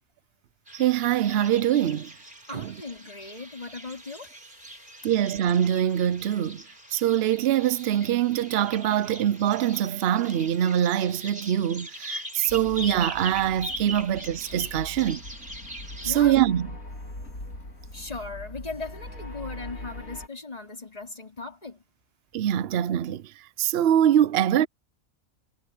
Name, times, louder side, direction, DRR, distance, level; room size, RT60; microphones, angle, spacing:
sound 1, 0.7-16.3, right 1 dB, 35° right, 8.3 m, -41 dB
voice 1, 0.8-2.1 2.5-2.7 5.0-6.6 6.9-15.2 16.0-16.7 22.3-23.2 23.6-24.7, right 11 dB, 55° right, 0.7 m, -23 dB
voice 2, 2.5-4.3 16.0-16.4 17.9-21.8, left 3 dB, 25° left, 4.1 m, -38 dB
sound 2, 12.5-20.3, left 1 dB, 75° left, 5.0 m, -41 dB
omnidirectional pair, 1.5 m